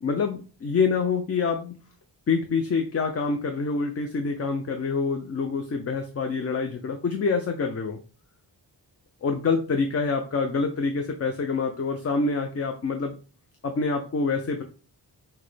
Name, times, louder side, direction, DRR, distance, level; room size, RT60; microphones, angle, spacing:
voice 1, 0.0-1.8 2.3-8.0 9.2-13.1 13.6-14.6, left 4 dB, 35° left, 5 dB, 0.5 m, -26 dB
5.9 x 2.2 x 3.2 m, 0.36 s
wide cardioid pair, 120°, 43 cm